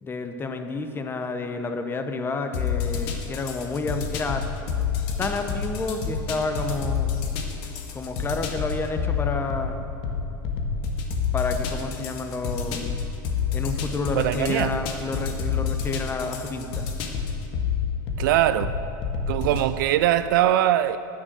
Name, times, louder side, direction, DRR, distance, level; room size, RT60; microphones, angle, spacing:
voice 1, 0.0-4.5 5.2-7.2 7.9-9.9 11.3-13.0 13.5-16.9 19.5-19.6, left 3 dB, 20° left, 7 dB, 1.0 m, -30 dB
sound 1, 2.5-19.7, left 6 dB, 55° left, 1.6 m, -29 dB
voice 2, 14.1-14.7 18.2-18.7 19.3-21.0, right 12 dB, 65° right, 13 dB, 0.4 m, -21 dB
10.5 x 9.4 x 6.3 m, 2.8 s
hypercardioid pair, 110°, 11 cm